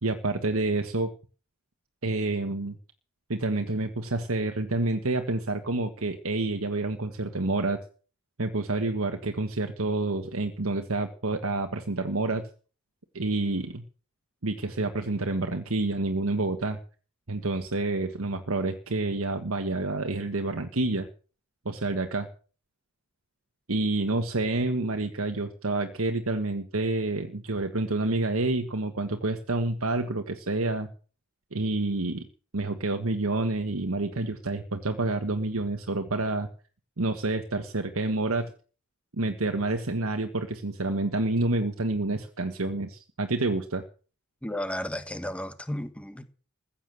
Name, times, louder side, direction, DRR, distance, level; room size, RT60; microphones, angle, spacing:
voice 1, 0.0-1.1 2.0-2.7 3.3-7.8 8.4-12.4 13.1-13.8 14.4-16.8 17.3-21.1 21.6-22.3 23.7-30.9 31.5-32.2 32.5-36.5 37.0-38.5 39.2-43.8, right 2 dB, 85° right, 1.4 m, -28 dB
voice 2, 44.4-46.2, left 1 dB, 5° left, 1.4 m, -33 dB
15.0 x 8.6 x 7.7 m
head